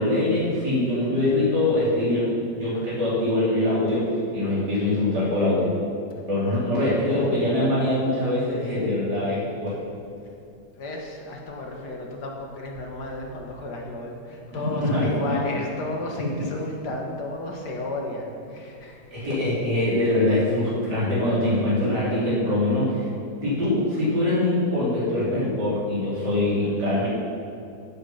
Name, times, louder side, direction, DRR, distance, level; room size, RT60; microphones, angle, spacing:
voice 1, 0.0-5.7 6.3-9.7 14.8-15.4 16.2-16.4 19.1-23.0 23.4-27.1, left 1 dB, 75° right, -9 dB, 4.0 m, -23 dB
voice 2, 10.7-19.3, left 1 dB, 75° left, 1 dB, 2.1 m, -33 dB
14.0 x 6.9 x 5.8 m, 2.7 s
omnidirectional pair, 1.8 m